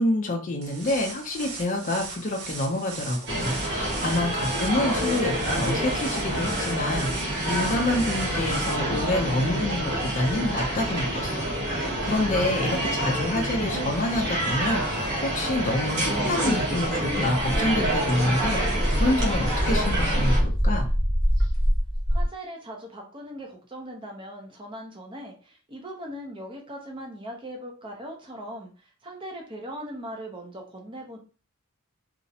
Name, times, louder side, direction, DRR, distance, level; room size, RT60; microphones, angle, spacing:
voice 1, 0.0-20.9, left 1 dB, 35° left, 2 dB, 0.4 m, -27 dB
sound 1, 0.6-8.7, right 4 dB, 80° right, 0.6 m, -39 dB
sound 2, 3.3-20.4, right 1 dB, 50° right, 0.8 m, -27 dB
sound 3, 16.8-16.9 17.2-22.3, equal, ahead, 0.9 m, -24 dB
voice 2, 22.1-31.2, equal, 25° right, 1 dB, 0.5 m, -39 dB
2.4 x 2.0 x 2.7 m, 0.37 s
head